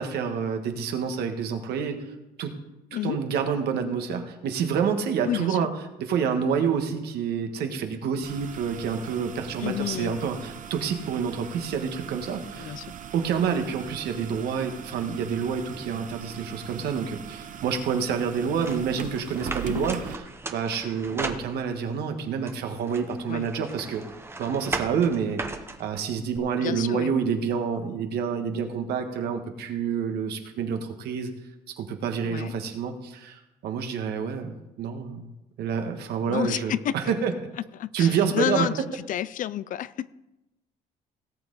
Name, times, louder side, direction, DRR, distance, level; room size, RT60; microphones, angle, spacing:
voice 1, 0.0-2.0 2.4-2.5 3.0-5.7 6.0-12.8 13.1-20.2 20.5-24.0 24.4-25.4 25.8-31.3 31.7-35.3 35.6-37.3 37.9-38.7, right 6 dB, 75° right, 5 dB, 1.5 m, -28 dB
voice 2, 5.2-5.7 9.6-10.2 12.6-12.9 19.6-19.8 23.3-23.5 26.6-27.1 32.2-32.5 36.3-37.0 37.7-40.1, left 11 dB, 50° left, 18 dB, 0.4 m, -30 dB
sound 1, 8.2-20.2, right 9 dB, 50° right, 0.9 m, -40 dB
sound 2, 18.6-22.0 22.5-26.4, right 2 dB, 15° right, 0.9 m, -37 dB
18.0 x 7.5 x 4.0 m, 0.96 s
cardioid pair, 110°, 17 cm